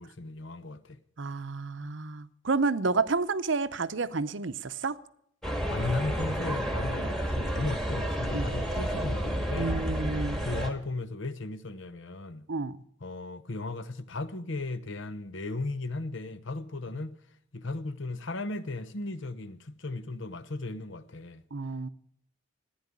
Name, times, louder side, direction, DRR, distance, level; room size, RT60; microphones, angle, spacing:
voice 1, 0.0-1.0 5.7-9.8 10.4-12.4 13.0-17.1 17.5-21.4, left 2 dB, 65° left, 0.9 m, -36 dB
voice 2, 1.2-5.0 8.3-8.5 9.6-10.5 12.5-12.8 21.5-21.9, right 4 dB, 60° right, 0.7 m, -30 dB
sound 1, 5.4-10.7, equal, ahead, 1.7 m, -31 dB
14.5 x 9.9 x 8.4 m
head